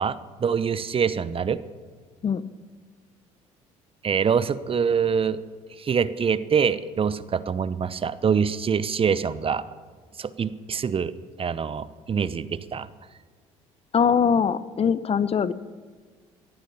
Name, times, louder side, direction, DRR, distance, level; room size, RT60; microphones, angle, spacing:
voice 1, 0.0-1.6 4.0-5.4 5.8-9.6 10.2-12.9, right 6 dB, 35° right, 16 dB, 0.8 m, -25 dB
voice 2, 13.9-15.5, left 7 dB, 40° left, 16 dB, 0.8 m, -22 dB
18.0 x 11.5 x 7.0 m, 1.5 s
hypercardioid pair, 60°, 16 cm